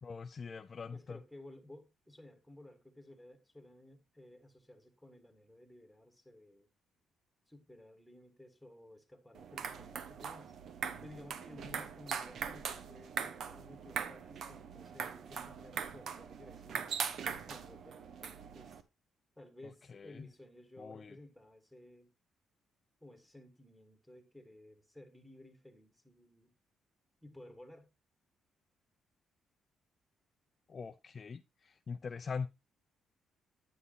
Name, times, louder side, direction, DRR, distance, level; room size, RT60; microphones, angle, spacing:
voice 1, 0.0-1.2 19.9-20.3 20.8-21.1 30.7-32.5, left 5 dB, 40° left, 0.4 m, -42 dB
voice 2, 0.9-6.7 7.5-10.6 11.0-16.9 17.5-18.8 19.4-22.1 23.0-26.5 27.2-27.9, left 1 dB, ahead, 1.7 m, -56 dB
sound 1, 9.3-18.8, right 6 dB, 65° right, 0.8 m, -41 dB
9.6 x 7.8 x 2.6 m
cardioid pair, 90°, 0 cm